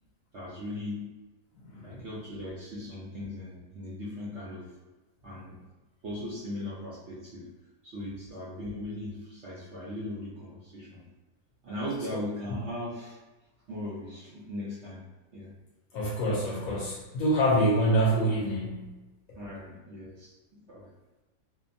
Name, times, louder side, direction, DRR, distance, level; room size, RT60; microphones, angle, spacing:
voice 1, 0.3-1.0 1.8-4.7 5.2-5.6 6.0-7.5 7.8-11.1 11.6-13.2 13.7-15.0 15.3-15.5 19.3-20.9, left 1 dB, 65° right, -7 dB, 0.7 m, -38 dB
voice 2, 1.7-2.0 12.1-12.2 15.9-18.9, right 1 dB, 70° left, -4 dB, 0.9 m, -26 dB
2.7 x 2.2 x 2.5 m, 1.1 s
omnidirectional pair, 1.8 m